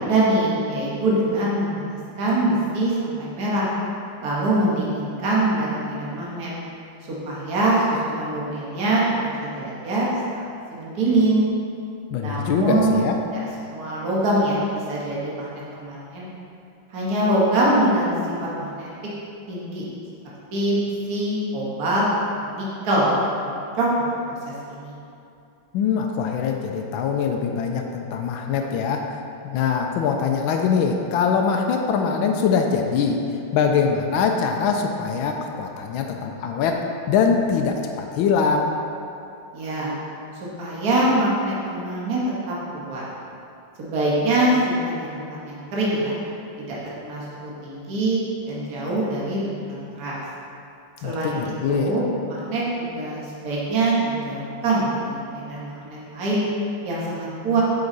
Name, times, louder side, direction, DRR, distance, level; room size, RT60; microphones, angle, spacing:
voice 1, 0.0-3.7 4.2-6.5 7.1-9.0 9.4-10.4 10.7-11.4 12.2-13.0 13.3-15.5 15.8-16.3 16.9-18.1 18.4-18.9 19.5-19.8 20.5-20.8 21.1-22.0 22.4-24.3 24.7-24.9 39.5-40.0 40.6-43.0 43.8-46.2 46.6-50.2 51.0-51.4 51.7-56.5 56.8-57.6, right 1 dB, 50° right, -6 dB, 1.8 m, -24 dB
voice 2, 12.1-13.2 25.7-38.8 51.0-51.9, left 6 dB, 85° left, 3 dB, 1.4 m, -23 dB
7.9 x 5.6 x 4.0 m, 2.7 s
omnidirectional pair, 2.1 m